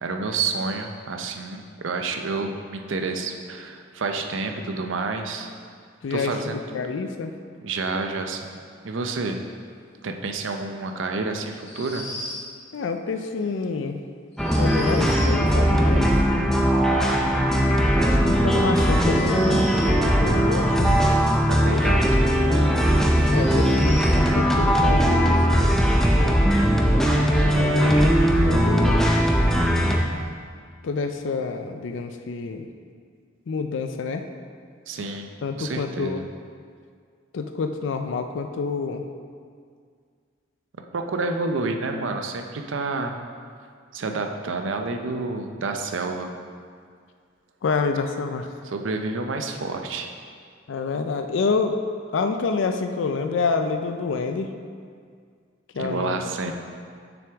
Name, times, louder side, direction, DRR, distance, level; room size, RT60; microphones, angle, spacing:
voice 1, 0.0-5.5 6.1-6.5 7.6-9.4 10.0-12.1 21.5-22.2 27.4-27.9 34.9-36.3 40.9-43.2 43.9-46.3 48.7-50.1 55.8-56.5, right 3 dB, 80° right, 5 dB, 0.6 m, -29 dB
voice 2, 6.0-7.3 12.7-14.0 14.6-16.2 18.0-21.0 21.7-22.1 23.3-25.8 27.6-29.1 30.8-32.7 33.5-34.3 35.4-36.2 37.3-39.1 47.6-48.5 50.7-51.8 52.1-54.5 55.7-56.5, left 4 dB, 75° left, 7 dB, 0.4 m, -28 dB
sound 1, 11.5-12.5 14.3-15.4 18.9-20.0 22.2-22.3 23.2-24.2, left 1 dB, 35° left, 1.4 m, -38 dB
sound 2, 14.4-30.0, equal, 5° left, 0.5 m, -19 dB
6.8 x 6.0 x 3.5 m, 2.1 s
head